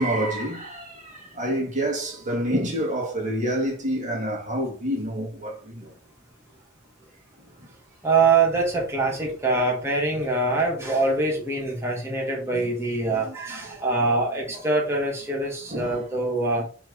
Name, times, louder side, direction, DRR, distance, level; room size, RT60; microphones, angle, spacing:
voice 1, 0.0-5.9 10.4-10.5 12.5-12.7 13.1-13.4 13.7-13.8 15.7-16.0, right 1 dB, 40° right, 1.8 m, -28 dB
voice 2, 8.0-16.7, right 3 dB, 15° right, 1.8 m, -24 dB
5.9 x 3.1 x 5.4 m
head